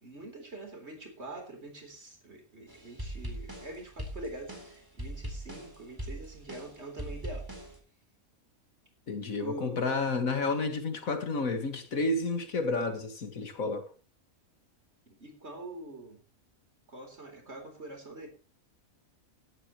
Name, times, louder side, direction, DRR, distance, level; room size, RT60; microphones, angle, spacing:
voice 1, 0.0-7.5 9.4-9.8 15.1-16.2 16.9-18.3, right 2 dB, 50° right, 4.0 m, -44 dB
sound 1, 2.7-7.8, right 1 dB, 15° right, 4.0 m, -41 dB
voice 2, 9.1-13.9, left 3 dB, 75° left, 2.2 m, -31 dB
16.5 x 12.0 x 3.1 m
omnidirectional pair, 1.5 m